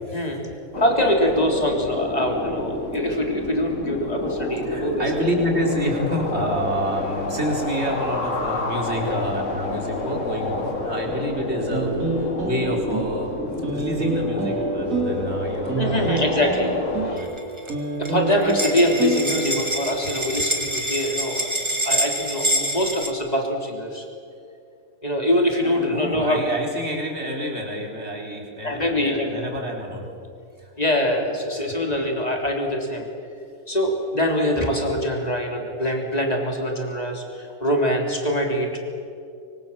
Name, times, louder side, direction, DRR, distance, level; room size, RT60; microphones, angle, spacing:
voice 1, 0.1-0.4 0.8-5.0 9.1-9.2 15.7-16.7 17.1-17.3 18.0-21.5 21.8-24.0 25.0-26.4 28.6-29.4 30.8-33.1 33.7-38.8, left 1 dB, 25° left, 1 dB, 3.9 m, -23 dB
sound 1, 0.7-17.2, left 2 dB, 55° left, 2.3 m, -29 dB
voice 2, 4.6-13.3 13.7-16.2 16.9-17.3 25.6-30.1 30.6-30.7 31.6-31.8, equal, 45° right, 0 dB, 4.5 m, -28 dB
sound 2, 11.7-19.8, right 3 dB, 65° right, 3.5 m, -28 dB
sound 3, 17.2-17.7 18.0-18.1 18.3-23.1, right 1 dB, 20° right, 2.7 m, -26 dB
25.0 x 24.0 x 7.6 m, 2.5 s
omnidirectional pair, 1.6 m